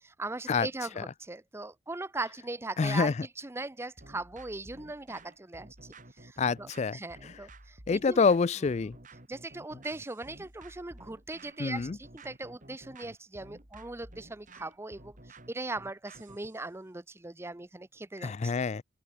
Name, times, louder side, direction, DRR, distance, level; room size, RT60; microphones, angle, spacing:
voice 1, 0.0-5.7 6.2-8.2 9.3-18.5, right 2 dB, 15° right, 0.6 m, -39 dB
voice 2, 2.8-3.3 6.4-7.3 7.9-9.0 11.6-12.0 18.2-18.8, left 5 dB, 35° left, 0.4 m, -27 dB
sound 1, 4.0-16.6, right 2 dB, 45° right, 5.2 m, -52 dB
open air
head